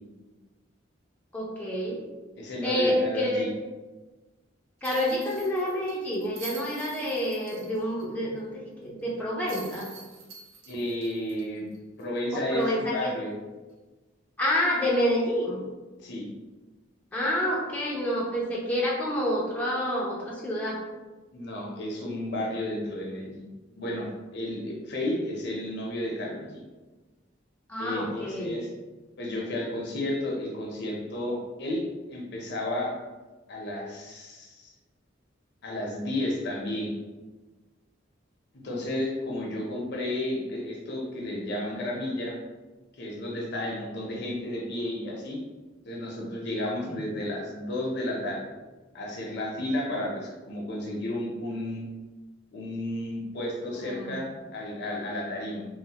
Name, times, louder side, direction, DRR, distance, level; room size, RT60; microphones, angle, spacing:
voice 1, 1.3-2.0 2.6-3.5 4.8-9.9 12.3-13.1 14.4-15.6 17.1-20.8 27.7-28.6 46.9-47.0 53.8-54.1, equal, 10° left, -5 dB, 0.5 m, -28 dB
voice 2, 2.4-3.5 10.7-11.7 12.0-13.3 16.0-16.3 21.3-23.5 23.7-26.6 27.8-28.7 29.2-32.9 33.5-34.7 35.6-36.9 38.6-42.3 43.0-45.4 45.8-48.4 48.9-51.8 52.5-55.7, left 1 dB, 65° left, -2 dB, 0.7 m, -32 dB
sound 1, 4.8-8.1 8.4-8.5 9.5-12.2 12.6-12.7 14.8-15.0, right 4 dB, 80° right, 0.5 m, -46 dB
3.1 x 2.1 x 2.8 m, 1.2 s
head